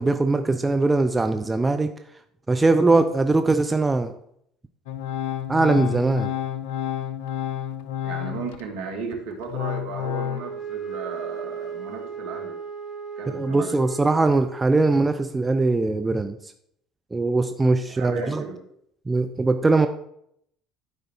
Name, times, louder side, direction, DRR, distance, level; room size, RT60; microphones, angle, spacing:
voice 1, 0.0-1.9 2.5-4.1 5.5-6.3 13.3-16.4 17.1-18.4 19.1-19.9, right 3 dB, 20° right, 8 dB, 0.7 m, -21 dB
Organ, 4.9-8.7 9.1-10.4, left 10 dB, 75° left, 0.6 m, -30 dB
voice 2, 8.0-12.6 13.2-13.8 17.9-18.6, right 5 dB, 70° right, 3 dB, 1.9 m, -35 dB
Wind instrument woodwind instrument, 10.3-14.9, right 6 dB, 25° left, 4.2 m, -36 dB
12.0 x 5.1 x 4.6 m, 0.70 s
hypercardioid pair, 65°, 0 cm